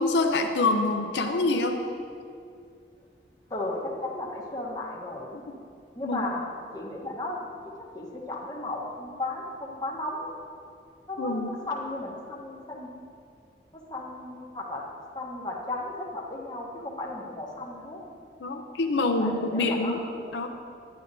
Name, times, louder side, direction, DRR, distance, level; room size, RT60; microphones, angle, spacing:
voice 1, 0.0-1.8 6.0-6.3 11.2-11.5 18.4-20.0 20.3-20.5, left 2 dB, 80° left, 5 dB, 0.5 m, -26 dB
voice 2, 3.5-5.4 5.9-6.4 6.7-7.5 7.9-10.3 11.1-12.9 13.9-14.8 15.1-18.0 19.2-20.2, left 2 dB, 20° left, -2 dB, 1.0 m, -35 dB
11.0 x 9.7 x 2.7 m, 2.4 s
head